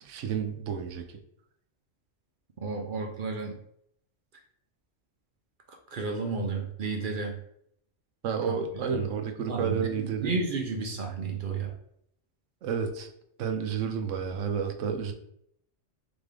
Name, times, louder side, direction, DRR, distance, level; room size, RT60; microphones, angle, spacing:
voice 1, 0.0-1.0 8.2-10.4 12.6-13.1 13.4-15.1, right 6 dB, 85° right, 5 dB, 1.0 m, -31 dB
voice 2, 2.6-3.6 5.9-7.4 9.4-11.7, right 4 dB, 55° right, 2 dB, 0.7 m, -32 dB
4.0 x 3.3 x 3.6 m, 0.72 s
omnidirectional pair, 1.2 m